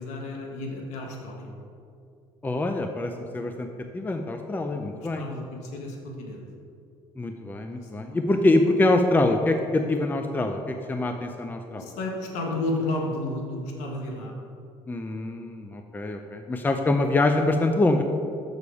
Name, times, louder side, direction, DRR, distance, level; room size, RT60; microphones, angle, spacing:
voice 1, 0.0-1.5 4.8-6.4 7.7-8.0 8.3-8.4 11.7-14.3, left 2 dB, 80° left, 0 dB, 1.4 m, -32 dB
voice 2, 2.4-3.7 3.9-5.2 7.2-11.9 14.9-18.0, left 2 dB, 15° left, 5 dB, 0.5 m, -25 dB
7.0 x 6.5 x 4.8 m, 2.4 s
cardioid pair, 95°, 12 cm